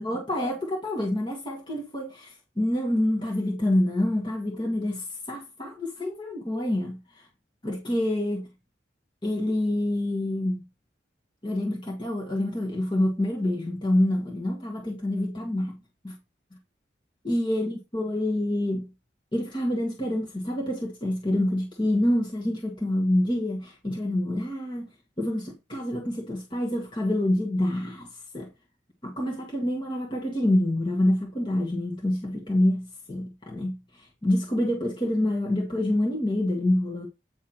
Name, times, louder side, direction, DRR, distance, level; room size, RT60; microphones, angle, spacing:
voice 1, 0.0-7.3 7.6-8.5 9.2-10.6 11.4-15.8 16.0-16.2 17.2-18.9 19.3-24.9 25.2-28.5 29.0-37.1, left 1 dB, 25° left, 1.8 m, -27 dB
9.4 x 3.6 x 5.9 m
head